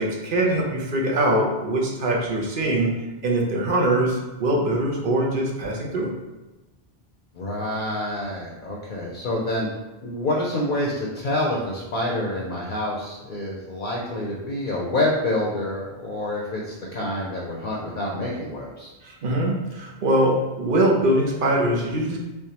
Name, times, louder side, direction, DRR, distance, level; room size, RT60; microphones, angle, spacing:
voice 1, 0.0-2.9 3.2-6.1 19.0-22.2, right 1 dB, 60° right, -1 dB, 0.8 m, -22 dB
voice 2, 7.3-9.7 10.0-18.9, left 1 dB, 60° left, -3 dB, 0.7 m, -27 dB
3.5 x 3.2 x 2.8 m, 1.1 s
omnidirectional pair, 1.1 m